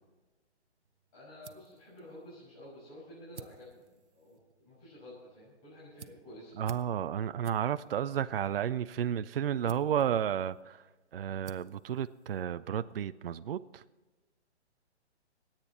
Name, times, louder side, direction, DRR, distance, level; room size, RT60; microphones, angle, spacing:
sound 1, 0.8-13.0, right 6 dB, 80° right, 0.9 m, -56 dB
voice 1, 1.1-6.6, left 1 dB, 30° left, -9 dB, 6.3 m, -51 dB
voice 2, 6.6-10.8 11.1-13.8, right 9 dB, 55° right, 13 dB, 0.5 m, -32 dB
26.0 x 9.0 x 4.2 m, 1.2 s
hypercardioid pair, 150°, 34 cm